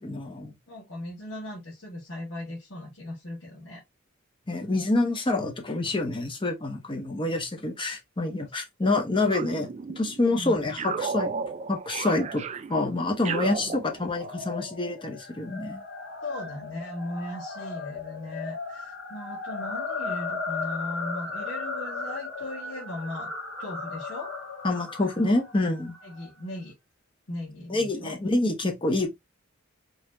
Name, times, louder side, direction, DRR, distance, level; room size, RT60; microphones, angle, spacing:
voice 1, 0.0-0.5 4.5-9.7 10.0-11.4 11.7-12.4 12.7-15.8 24.6-26.0 27.7-29.1, left 2 dB, 25° left, 0.8 m, -27 dB
voice 2, 0.7-3.8 10.3-10.6 13.7-13.8 16.2-23.3 23.6-24.3 26.0-26.7 27.3-28.2, left 1 dB, 85° left, 1.5 m, -38 dB
sound 1, 9.3-10.3 10.8-14.4, right 5 dB, 35° right, 0.3 m, -34 dB
sound 2, 13.9-26.3, left 4 dB, 60° left, 1.5 m, -36 dB
4.1 x 2.8 x 2.5 m
head